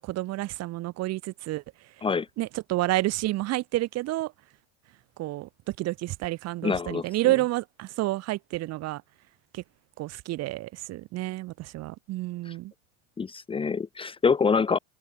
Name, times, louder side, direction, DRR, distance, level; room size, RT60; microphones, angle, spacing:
voice 1, 0.0-1.6 2.4-4.3 5.2-9.0 9.5-9.6 10.0-12.7, right 17 dB, 40° right, 6.0 m, -29 dB
voice 2, 6.6-7.1 12.5-12.6 13.2-14.8, left 5 dB, 15° left, 2.2 m, -25 dB
supercardioid pair, 150°, 39 cm